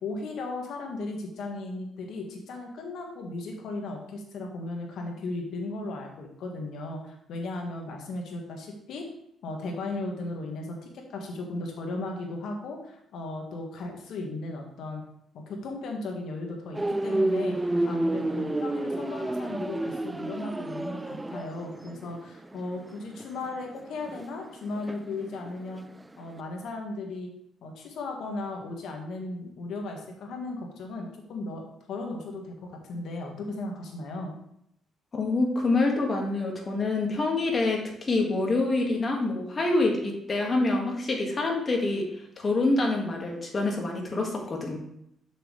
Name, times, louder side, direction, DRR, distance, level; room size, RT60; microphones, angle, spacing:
voice 1, 0.0-9.0 9.4-15.0 15.3-25.8 26.2-27.3 27.6-31.6 31.9-34.4, left 2 dB, 75° left, 2 dB, 1.6 m, -36 dB
sound 1, 16.7-25.8 26.1-26.4, right 2 dB, 15° right, 0.3 m, -30 dB
voice 2, 35.1-42.0 42.4-44.8, left 2 dB, 35° left, 0 dB, 1.8 m, -26 dB
6.9 x 6.2 x 3.2 m, 0.75 s
cardioid pair, 90°, 0 cm